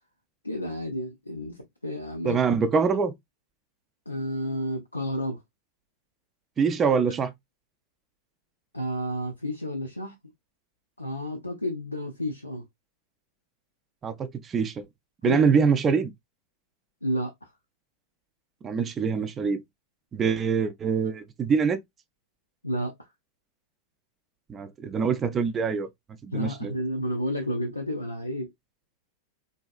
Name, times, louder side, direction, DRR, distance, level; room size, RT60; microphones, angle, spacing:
voice 1, 0.4-2.4 4.1-5.4 8.7-10.1 11.0-12.6 15.2-15.4 17.0-17.3 22.6-22.9 26.3-28.5, equal, 85° left, 0.6 m, -31 dB
voice 2, 2.2-3.1 6.6-7.3 14.0-14.9 15.2-16.1 18.6-19.6 20.1-21.8 24.5-25.9 26.2-26.7, right 5 dB, 25° right, 0.5 m, -24 dB
3.8 x 2.7 x 2.4 m
figure-of-eight pair, 90°, 0 cm